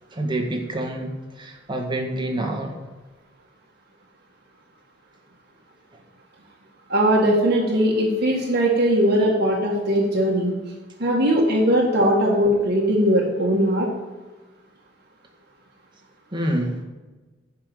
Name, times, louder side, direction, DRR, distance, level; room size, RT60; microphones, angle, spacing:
voice 1, 0.1-2.8 16.3-16.8, right 1 dB, 25° right, 1 dB, 1.8 m, -27 dB
voice 2, 6.9-10.5 11.0-13.9, equal, 55° right, -3 dB, 1.8 m, -19 dB
10.5 x 5.8 x 7.8 m, 1.3 s
head